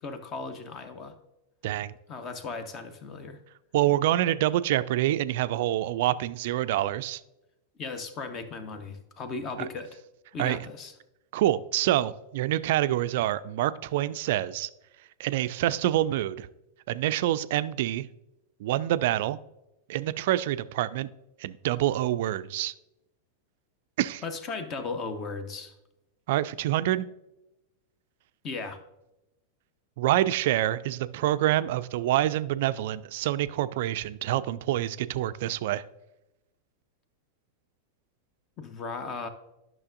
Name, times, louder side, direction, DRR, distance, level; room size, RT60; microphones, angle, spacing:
voice 1, 0.0-1.1 2.1-3.4 7.8-9.9 10.3-10.9 24.2-25.7 28.4-28.8 38.6-39.3, left 4 dB, 30° left, 9 dB, 0.8 m, -36 dB
voice 2, 1.6-1.9 3.7-7.2 10.4-10.6 11.3-14.7 15.2-16.5 16.9-18.1 18.6-19.4 19.9-21.1 21.4-22.7 24.0-24.2 26.3-27.1 30.0-35.8, right 14 dB, 50° right, 15 dB, 0.3 m, -26 dB
12.0 x 6.1 x 2.5 m, 0.92 s
figure-of-eight pair, 90°, 0 cm